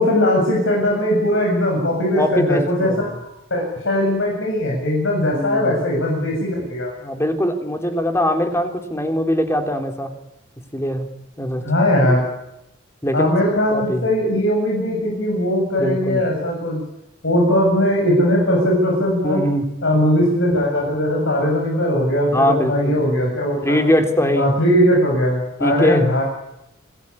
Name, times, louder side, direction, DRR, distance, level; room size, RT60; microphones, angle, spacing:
voice 1, 0.0-3.1 3.5-6.9 11.6-12.2 13.1-16.8 17.2-19.4 19.8-23.8 24.4-26.2, left 1 dB, 65° left, -1 dB, 7.2 m, -19 dB
voice 2, 2.2-3.0 5.3-5.8 7.0-10.1 10.7-11.1 11.4-11.7 12.1-12.2 13.0-13.3 13.7-14.1 15.8-16.3 19.2-19.7 22.3-23.0 23.6-24.5 25.6-26.1, equal, 15° left, 5 dB, 3.5 m, -21 dB
26.5 x 19.5 x 9.8 m, 0.88 s
head